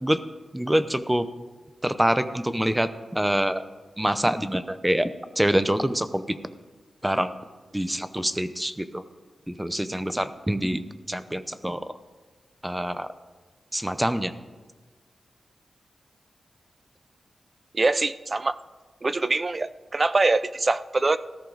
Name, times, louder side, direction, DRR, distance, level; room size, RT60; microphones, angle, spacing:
voice 1, 0.5-1.3 1.8-3.6 4.0-5.1 5.4-6.4 7.0-7.3 7.7-9.0 9.5-10.8 11.1-11.8 12.6-13.1 13.7-14.3, right 1 dB, 10° right, 12 dB, 0.8 m, -25 dB
voice 2, 17.7-18.6 19.0-21.2, right 3 dB, 35° right, 15 dB, 0.4 m, -23 dB
18.5 x 14.0 x 4.0 m, 1.3 s
wide cardioid pair, 95°, 0 cm